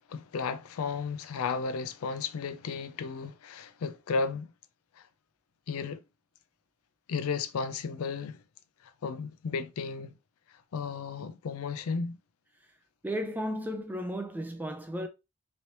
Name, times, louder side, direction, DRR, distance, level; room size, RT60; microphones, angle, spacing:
voice 1, 0.1-4.5 5.0-5.1 5.7-6.0 7.1-8.4 9.0-10.1 10.7-12.2, left 5 dB, 80° left, 0.4 m, -34 dB
voice 2, 13.0-15.1, equal, 10° right, 0.4 m, -34 dB
3.1 x 2.8 x 2.9 m
head